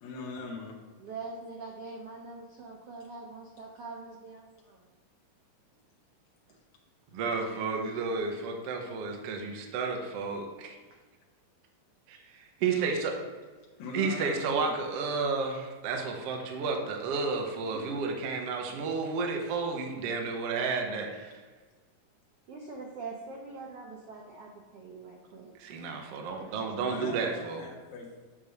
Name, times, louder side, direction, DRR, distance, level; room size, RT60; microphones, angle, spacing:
voice 1, 0.0-0.8 13.8-14.8 26.9-28.1, left 3 dB, 65° left, -3 dB, 2.2 m, -40 dB
voice 2, 1.0-4.9 17.7-18.2 18.7-18.8 22.5-25.5, right 3 dB, 90° right, 0 dB, 1.3 m, -43 dB
voice 3, 7.1-10.7 12.1-13.2 13.9-21.3 25.6-27.6, right 4 dB, 70° right, 2 dB, 1.5 m, -32 dB
8.6 x 3.1 x 6.5 m, 1.4 s
omnidirectional pair, 3.9 m